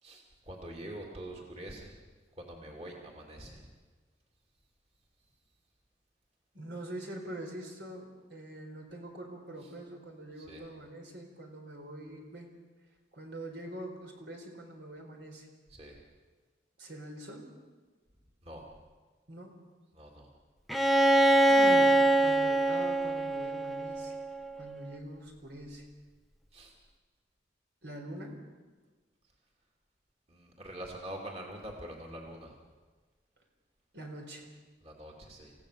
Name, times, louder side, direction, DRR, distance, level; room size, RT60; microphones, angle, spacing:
voice 1, 0.0-2.0 2.4-3.7 9.6-9.7 10.4-10.6 15.7-16.0 18.4-18.6 19.9-20.3 21.4-21.6 26.5-26.7 30.3-32.5 34.8-35.5, right 1 dB, 35° right, 0 dB, 2.8 m, -45 dB
voice 2, 6.5-12.5 13.1-15.5 16.8-17.5 19.3-19.6 21.5-24.2 24.5-25.9 27.8-28.4 33.9-34.5, right 1 dB, 80° right, 2 dB, 4.4 m, -44 dB
Bowed string instrument, 20.7-24.5, right 1 dB, ahead, 0.7 m, -24 dB
28.0 x 16.0 x 6.8 m, 1.4 s
head